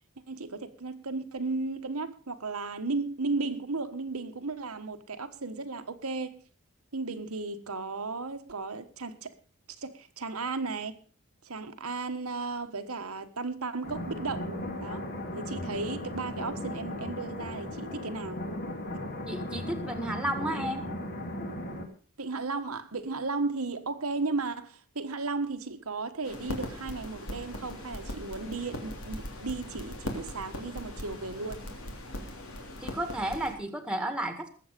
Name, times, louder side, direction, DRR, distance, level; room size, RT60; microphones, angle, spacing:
voice 1, 0.3-6.4 6.9-9.3 9.8-11.0 11.4-14.5 14.8-15.0 15.3-18.4 22.2-31.6, right 3 dB, 80° right, 1.4 m, -35 dB
sound 1, 13.8-21.8, left 1 dB, 45° left, 2.5 m, -36 dB
voice 2, 19.3-20.8 32.8-34.5, right 1 dB, 5° right, 1.8 m, -32 dB
sound 2, 26.2-33.6, left 1 dB, 70° left, 3.2 m, -40 dB
20.0 x 7.9 x 5.2 m
head